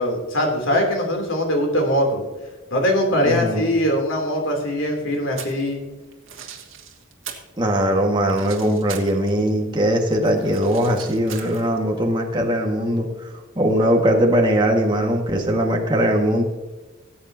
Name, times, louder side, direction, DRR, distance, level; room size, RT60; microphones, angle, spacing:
voice 1, 0.0-2.2 2.7-5.8, equal, 65° left, 2 dB, 3.2 m, -21 dB
voice 2, 3.1-3.7 7.6-13.3 13.6-16.4, equal, 20° right, 0 dB, 1.7 m, -20 dB
sound 1, 5.1-5.7 6.1-7.5 7.8-9.5 9.8-12.0, right 8 dB, 75° right, 2.0 m, -39 dB
19.5 x 8.4 x 2.8 m, 1.2 s
head